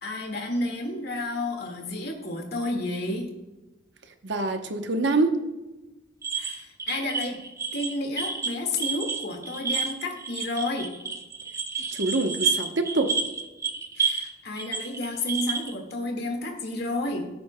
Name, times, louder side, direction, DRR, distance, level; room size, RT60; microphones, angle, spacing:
voice 1, 0.0-3.3 6.3-7.4 7.7-10.9 14.0-17.3, left 2 dB, 55° left, 2 dB, 1.9 m, -31 dB
voice 2, 4.2-5.3 11.9-13.1, right 3 dB, 65° right, 6 dB, 0.9 m, -25 dB
sound 1, 6.2-14.3 14.6-15.7, right 5 dB, 15° right, 0.7 m, -30 dB
17.0 x 8.5 x 2.2 m, 1.1 s
head